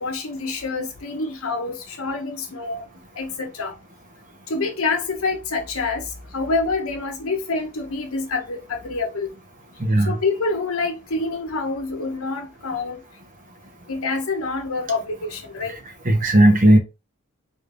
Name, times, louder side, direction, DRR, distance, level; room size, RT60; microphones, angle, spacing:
voice 1, 0.0-2.9 3.2-3.7 4.5-6.0 6.3-9.3 10.1-13.0 13.9-15.8, left 3 dB, 70° left, 1.0 m, -26 dB
voice 2, 9.8-10.2 16.0-16.8, right 1 dB, 40° right, 0.7 m, -15 dB
3.5 x 2.6 x 3.3 m
head